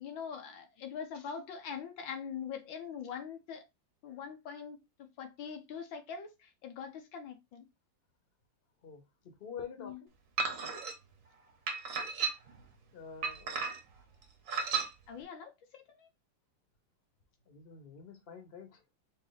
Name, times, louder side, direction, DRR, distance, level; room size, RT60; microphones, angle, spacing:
voice 1, 0.0-3.6 4.0-4.8 5.2-7.7 9.8-10.0 15.1-16.1, left 7 dB, 85° left, 1.8 m, -43 dB
voice 2, 8.8-10.1 12.9-13.6 17.5-18.9, left 6 dB, 40° left, 1.0 m, -47 dB
sound 1, 10.4-10.9 11.7-12.6 13.2-14.0 14.5-14.9, right 5 dB, 50° right, 1.2 m, -34 dB
4.5 x 2.9 x 4.0 m
omnidirectional pair, 2.0 m